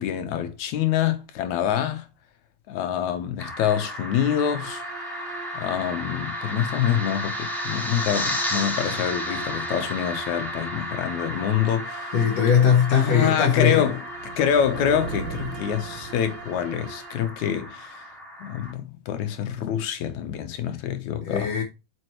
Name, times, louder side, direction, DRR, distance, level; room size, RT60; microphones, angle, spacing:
voice 1, 0.0-2.1 2.7-4.8 5.5-12.1 12.9-14.0 14.4-18.0 18.4-21.5, left 9 dB, 85° left, 2.3 m, -26 dB
sound 1, 3.4-18.7, equal, ahead, 1.4 m, -33 dB
Bowed string instrument, 4.6-17.4, right 7 dB, 90° right, 2.6 m, -43 dB
voice 2, 12.1-13.9 21.2-21.6, left 7 dB, 65° left, 2.2 m, -20 dB
sound 2, 14.1-17.0, right 5 dB, 65° right, 1.4 m, -37 dB
7.8 x 5.2 x 3.1 m
omnidirectional pair, 3.3 m